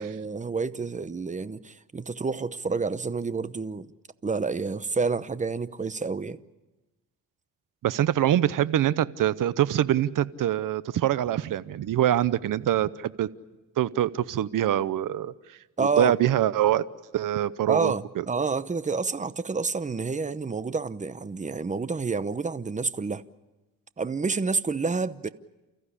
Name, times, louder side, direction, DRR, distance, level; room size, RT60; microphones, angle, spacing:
voice 1, 0.0-3.9 4.2-6.4 15.8-16.1 17.7-23.2 24.0-25.3, right 4 dB, 20° right, 0.9 m, -29 dB
voice 2, 7.8-13.3 13.8-15.3 15.8-16.8 17.1-18.2, right 12 dB, 75° right, 0.8 m, -24 dB
29.5 x 15.0 x 10.0 m
cardioid pair, 90°, 33 cm